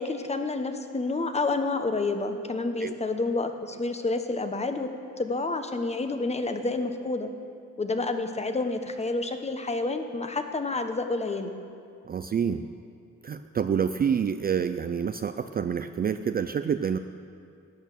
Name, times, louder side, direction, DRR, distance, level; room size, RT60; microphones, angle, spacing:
voice 1, 0.0-4.9 5.2-7.3 7.8-11.5, left 3 dB, 20° left, 7 dB, 1.0 m, -29 dB
voice 2, 12.0-12.7 13.2-17.0, right 7 dB, 30° right, 10 dB, 0.4 m, -27 dB
12.5 x 8.8 x 6.8 m, 2.5 s
cardioid pair, 90°, 30 cm